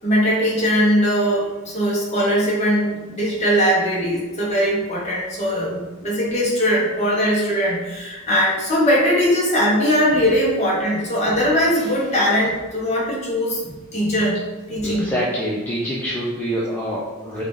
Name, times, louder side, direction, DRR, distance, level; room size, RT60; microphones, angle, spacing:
voice 1, 0.0-14.4 14.7-15.1, equal, 30° left, -5 dB, 0.9 m, -20 dB
voice 2, 14.8-17.4, equal, 5° left, -7 dB, 0.3 m, -26 dB
3.4 x 2.4 x 3.7 m, 1.2 s
head